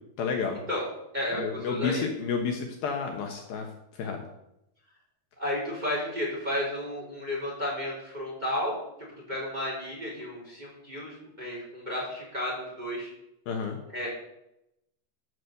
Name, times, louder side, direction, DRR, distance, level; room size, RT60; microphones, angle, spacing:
voice 1, 0.2-0.6 1.4-3.7 4.0-4.2 13.5-13.8, left 5 dB, 70° left, 3 dB, 2.8 m, -30 dB
voice 2, 1.1-2.1 5.4-8.8 9.3-13.1 13.9-14.1, left 1 dB, 10° right, -4 dB, 3.8 m, -32 dB
14.5 x 6.3 x 6.7 m, 0.84 s
omnidirectional pair, 4.7 m